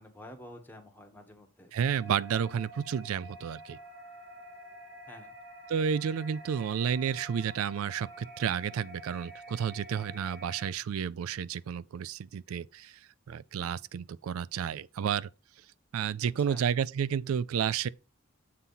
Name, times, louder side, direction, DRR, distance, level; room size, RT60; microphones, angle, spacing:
voice 1, 0.0-1.7 5.1-5.3 16.4-16.6, left 1 dB, 10° left, 1.3 m, -49 dB
voice 2, 1.7-3.8 5.7-13.0 13.3-15.3 15.9-17.9, right 7 dB, 90° right, 0.3 m, -31 dB
sound 1, 1.8-10.7, equal, 55° right, 2.3 m, -48 dB
7.5 x 4.1 x 5.6 m
head